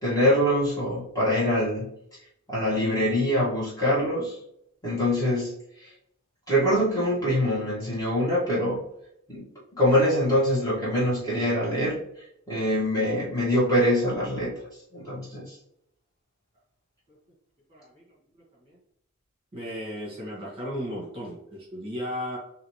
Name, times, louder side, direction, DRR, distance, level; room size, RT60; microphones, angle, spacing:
voice 1, 0.0-1.9 2.5-4.4 4.8-5.9 6.5-8.8 9.3-9.4 9.7-12.0 12.5-14.5 14.9-15.5, equal, 15° left, -8 dB, 1.7 m, -24 dB
voice 2, 17.7-18.0 18.6-18.8 19.5-22.4, equal, 25° right, -5 dB, 1.6 m, -35 dB
5.0 x 3.0 x 3.1 m, 0.74 s
head